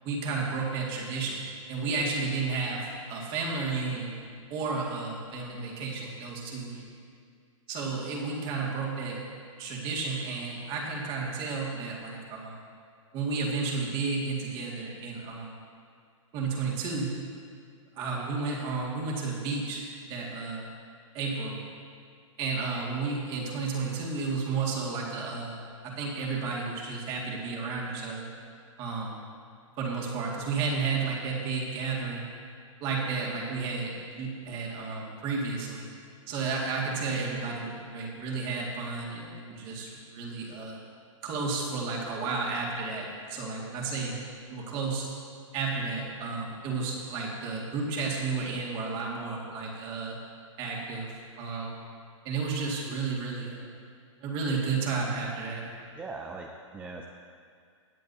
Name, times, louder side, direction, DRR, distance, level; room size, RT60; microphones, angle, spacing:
voice 1, 0.0-4.2 4.5-6.9 7.7-9.2 9.6-12.7 13.1-15.6 16.3-17.1 17.9-20.7 21.1-21.6 22.4-28.3 28.8-29.1 29.8-32.3 32.8-35.9 36.3-40.8 41.2-45.1 45.5-50.2 50.6-51.7 52.2-53.7 54.2-55.6, right 4 dB, 30° right, -2 dB, 2.1 m, -32 dB
voice 2, 56.0-57.0, right 3 dB, 10° right, 1 dB, 0.4 m, -40 dB
17.0 x 9.4 x 2.8 m, 2.2 s
hypercardioid pair, 145°, 17 cm